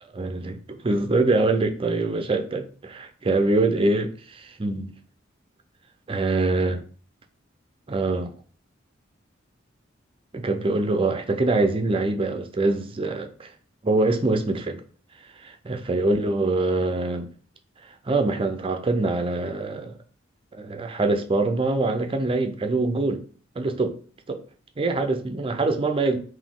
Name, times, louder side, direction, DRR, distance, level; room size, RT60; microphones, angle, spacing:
voice 1, 0.2-4.9 6.1-6.8 7.9-8.3 10.3-13.5 13.8-14.8 15.4-17.3 18.1-19.9 20.5-23.2 23.6-24.0 24.3-24.4 24.8-26.2, right 2 dB, 30° right, 0.5 m, -24 dB
4.0 x 2.7 x 3.6 m
head